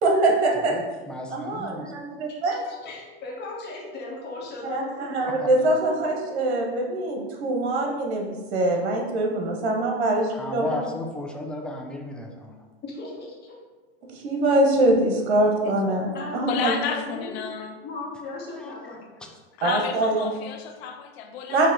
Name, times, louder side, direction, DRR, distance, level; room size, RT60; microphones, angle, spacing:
voice 1, 0.0-0.7 1.3-2.6 4.7-10.6 14.2-16.8 19.6-20.3 21.5-21.7, right 2 dB, 90° right, 0.9 m, -23 dB
voice 2, 0.5-1.9 5.2-5.7 10.3-12.6 18.6-18.7 19.2-19.3, left 1 dB, 5° left, 0.4 m, -35 dB
voice 3, 2.4-6.1 12.8-13.5 16.1-17.4 17.7-19.0, left 2 dB, 30° left, 1.4 m, -37 dB
voice 4, 16.5-17.8 19.6-21.7, left 7 dB, 70° left, 0.7 m, -32 dB
4.6 x 2.8 x 3.8 m
supercardioid pair, 115°, 32 cm